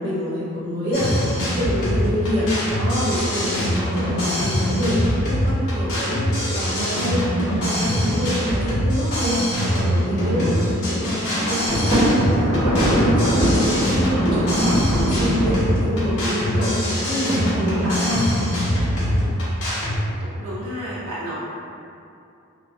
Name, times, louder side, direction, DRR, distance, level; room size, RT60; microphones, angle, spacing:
voice 1, 0.0-2.5 2.7-9.4 9.6-18.2, equal, 50° right, -11 dB, 0.8 m, -26 dB
sound 1, 0.9-20.0, equal, 75° left, 0.8 m, -23 dB
Thunder, 11.7-16.2, right 1 dB, 25° left, 0.7 m, -21 dB
voice 2, 20.2-21.3, equal, 90° right, -10 dB, 0.7 m, -32 dB
2.3 x 2.3 x 2.4 m, 2.6 s
head